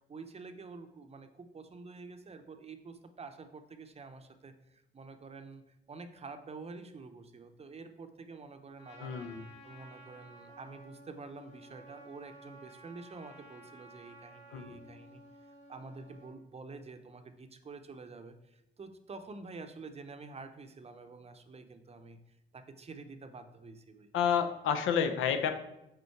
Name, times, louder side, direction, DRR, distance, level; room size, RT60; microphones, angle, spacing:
voice 1, 0.1-9.2 9.6-15.2 15.7-24.1, right 4 dB, 30° right, 8 dB, 0.6 m, -48 dB
Trumpet, 8.8-16.4, right 1 dB, 30° left, 2.1 m, -54 dB
voice 2, 9.0-9.4 14.5-14.8 24.1-25.6, left 7 dB, 85° left, 8 dB, 0.6 m, -30 dB
5.4 x 3.9 x 4.6 m, 0.87 s
cardioid pair, 90°, 20 cm